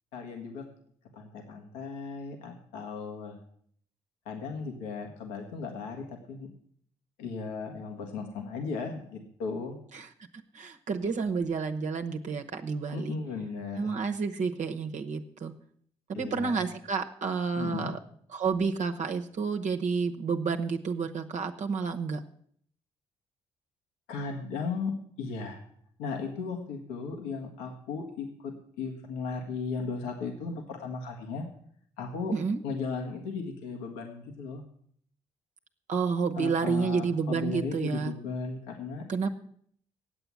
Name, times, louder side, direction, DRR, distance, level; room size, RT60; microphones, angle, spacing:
voice 1, 0.1-0.7 1.1-3.4 4.2-6.5 7.2-9.8 12.9-13.9 16.1-16.6 17.5-17.9 24.1-25.6 26.0-31.4 32.0-32.4 32.6-34.6 36.4-39.0, left 4 dB, 80° left, 2 dB, 1.5 m, -36 dB
voice 2, 10.5-13.2 13.8-15.5 16.2-18.0 18.3-22.2 32.3-32.6 35.9-38.1 39.1-39.3, right 5 dB, 50° right, 4 dB, 1.0 m, -30 dB
9.4 x 8.0 x 9.4 m, 0.62 s
hypercardioid pair, 45°, 16 cm